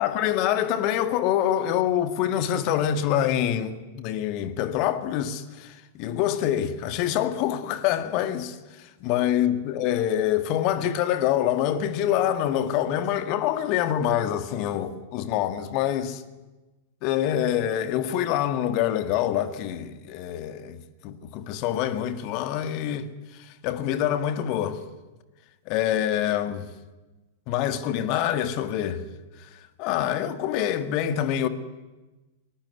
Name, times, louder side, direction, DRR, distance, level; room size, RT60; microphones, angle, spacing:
voice 1, 0.0-16.2 17.0-24.8 25.7-26.7 27.5-29.0 29.5-31.5, left 11 dB, 40° left, 1.8 m, -26 dB
22.0 x 19.5 x 9.8 m
figure-of-eight pair, 95°, 0 cm